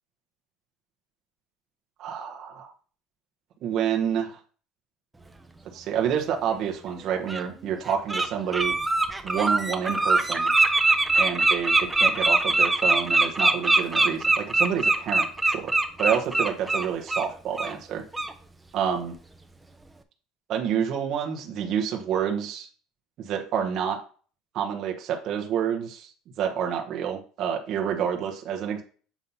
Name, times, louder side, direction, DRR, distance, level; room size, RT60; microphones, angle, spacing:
voice 1, 2.0-2.7 3.6-4.4 5.7-8.7 9.2-10.5 11.2-15.7 16.0-18.0 18.7-19.1 20.5-22.7 23.2-24.0 24.5-26.1 26.4-28.8, right 8 dB, 55° right, 2 dB, 1.1 m, -28 dB
Bird, 6.4-6.5 7.3-7.4 7.9-8.3 8.5-17.3 17.6-17.7 18.1-18.3, right 2 dB, 10° right, 0.8 m, -22 dB
7.2 x 2.8 x 5.5 m, 0.40 s
supercardioid pair, 110°, 0 cm